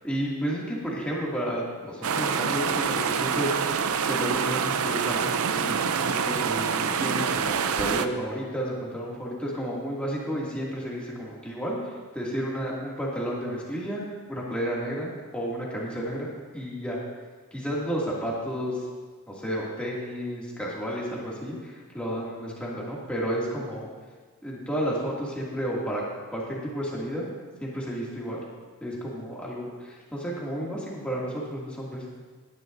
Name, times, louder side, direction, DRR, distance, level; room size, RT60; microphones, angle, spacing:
voice 1, 0.0-14.0 14.3-17.0 17.5-18.9 19.3-23.8 24.4-26.0 26.3-27.3 27.6-28.4 28.8-32.0, equal, 5° left, -6 dB, 2.4 m, -32 dB
sound 1, 2.0-8.1, right 6 dB, 90° right, 0.6 m, -26 dB
17.5 x 11.0 x 2.7 m, 1.5 s
head